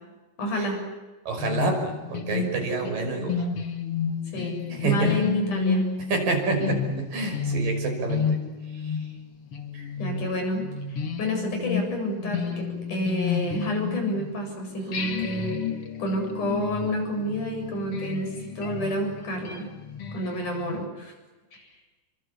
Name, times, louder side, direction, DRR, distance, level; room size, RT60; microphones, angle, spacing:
voice 1, 0.4-0.8 4.3-5.8 10.0-10.7 11.2-15.6 16.0-19.7 20.1-21.1 21.5-21.7, equal, 65° left, 2 dB, 9.1 m, -29 dB
voice 2, 1.3-3.4 4.7-5.2 6.1-8.4 8.8-9.0 9.7-9.8, right 3 dB, 85° right, 3 dB, 7.6 m, -27 dB
sound 1, 1.4-14.5 14.9-20.8, left 6 dB, 45° left, 3.0 m, -31 dB
29.0 x 24.0 x 8.5 m, 1.2 s
omnidirectional pair, 3.8 m